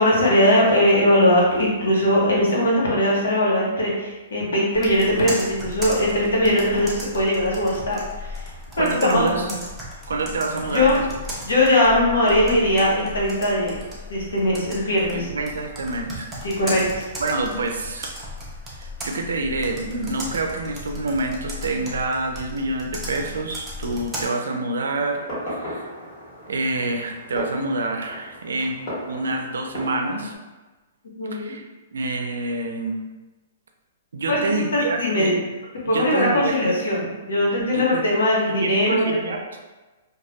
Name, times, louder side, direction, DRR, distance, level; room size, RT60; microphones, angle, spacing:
voice 1, 0.0-8.4 8.8-9.6 10.6-11.0 11.4-13.8 14.1-15.3 16.4-17.0 31.2-31.5 34.3-34.4 34.7-35.4 35.9-39.1, left 1 dB, 90° left, -4 dB, 0.9 m, -20 dB
Computer keyboard, 4.7-24.3, left 1 dB, 10° right, 0.5 m, -36 dB
voice 2, 8.8-9.5 10.1-11.0 15.1-16.4 17.2-18.2 18.8-25.9 26.5-30.3 31.3-31.6 31.9-33.0 34.1-35.3 35.9-36.7 37.7-38.0 38.6-39.4, right 2 dB, 90° right, 4 dB, 0.4 m, -27 dB
Fireworks, 25.1-30.3, equal, 35° left, 1.2 m, -36 dB
2.2 x 2.0 x 2.9 m, 1.2 s
hypercardioid pair, 145°, 0 cm